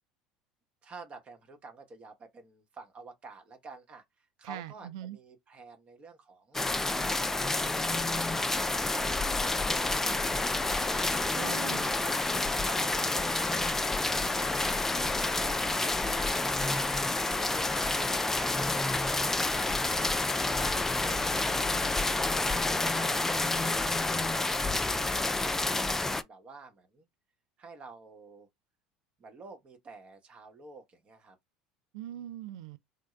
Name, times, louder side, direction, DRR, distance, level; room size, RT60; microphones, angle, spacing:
voice 1, 0.8-8.6 8.9-12.2 12.6-14.5 15.0-16.9 17.2-19.1 19.5-27.1 27.6-28.5 29.2-31.4, right 4 dB, 40° right, 1.0 m, -50 dB
voice 2, 4.4-5.2 11.3-11.9 31.9-32.8, right 12 dB, 75° right, 0.4 m, -41 dB
sound 1, 6.5-26.2, left 2 dB, 10° left, 0.4 m, -29 dB
3.6 x 2.2 x 3.1 m
hypercardioid pair, 70°, 3 cm